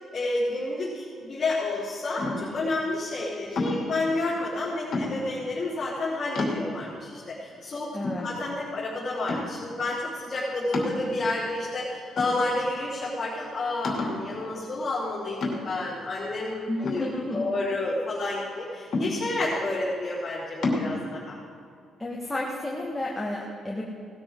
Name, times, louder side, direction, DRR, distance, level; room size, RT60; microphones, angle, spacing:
voice 1, 0.1-8.0 8.2-17.1 17.3-21.4, left 2 dB, 35° left, -12 dB, 4.0 m, -30 dB
sound 1, 2.2-2.6 3.6-4.0 4.9-5.4 5.9-6.0 6.4-7.0 7.5-7.6 8.0-8.8 9.3-9.7 10.7-11.5 12.2-12.8 13.1-13.2 13.8-14.3 15.4-15.9 16.8-17.7 18.9-19.5 20.6-20.9, left 2 dB, 50° left, 2.8 m, -30 dB
voice 2, 7.9-8.3 16.7-17.5 22.0-23.8, left 1 dB, 10° left, -3 dB, 1.5 m, -31 dB
18.5 x 12.5 x 3.8 m, 2.4 s
cardioid pair, 135°, 0 cm